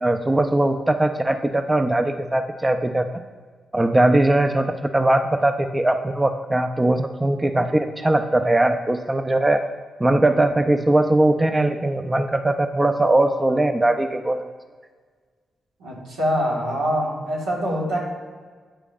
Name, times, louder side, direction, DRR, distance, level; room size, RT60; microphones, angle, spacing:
voice 1, 0.0-3.1 3.7-9.6 10.0-14.4, right 1 dB, 20° right, 7 dB, 0.5 m, -20 dB
voice 2, 15.8-18.0, equal, 85° right, -5 dB, 1.7 m, -24 dB
8.6 x 4.9 x 2.5 m, 1.5 s
hypercardioid pair, 40°, 0 cm